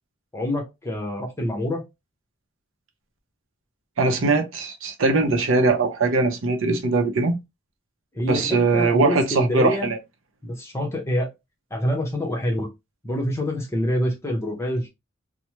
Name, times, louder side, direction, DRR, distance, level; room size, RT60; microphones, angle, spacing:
voice 1, 0.3-1.8 8.1-9.9 10.4-11.3 11.7-12.7 13.0-14.9, equal, 15° left, 0.8 m, -26 dB
voice 2, 4.0-7.4 8.2-10.0, right 3 dB, 70° right, 0.6 m, -21 dB
3.2 x 2.1 x 2.9 m
head